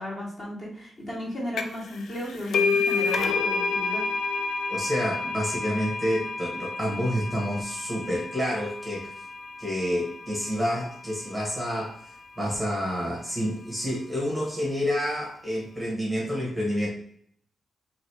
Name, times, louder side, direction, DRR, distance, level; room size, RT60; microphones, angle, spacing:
voice 1, 0.0-4.0, left 1 dB, 35° left, -5 dB, 1.6 m, -34 dB
sound 1, 1.6-1.9 2.1-9.5, left 4 dB, 75° left, 0.4 m, -28 dB
voice 2, 4.7-9.1 9.6-16.9, equal, ahead, -4 dB, 1.1 m, -29 dB
3.0 x 3.0 x 4.5 m, 0.62 s
wide cardioid pair, 160°, 0 cm